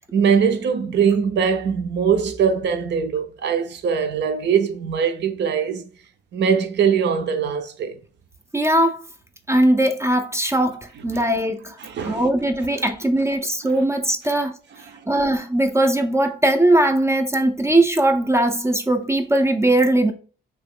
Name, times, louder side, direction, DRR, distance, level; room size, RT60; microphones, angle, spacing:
voice 1, 0.1-5.9 6.3-8.0 11.1-11.2 11.8-12.3 13.6-13.8, right 7 dB, 60° right, 0.6 m, -21 dB
voice 2, 8.5-9.0 9.5-14.6 15.1-20.1, right 1 dB, 15° right, 0.5 m, -20 dB
3.0 x 2.9 x 3.6 m
cardioid pair, 90°, 20 cm